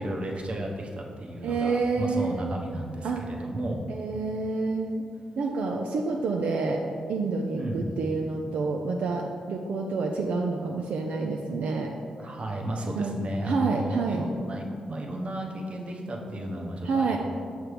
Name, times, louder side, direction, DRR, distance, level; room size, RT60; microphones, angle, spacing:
voice 1, 0.0-3.9 7.5-7.8 12.2-17.2, right 1 dB, 50° right, 1 dB, 0.9 m, -33 dB
voice 2, 1.4-2.5 3.0-3.3 3.9-5.0 5.4-6.8 7.1-11.9 12.9-13.2 13.4-14.3 16.8-17.2, right 4 dB, 80° right, 1 dB, 0.4 m, -28 dB
6.1 x 3.2 x 5.0 m, 2.2 s
cardioid pair, 60°, 2 cm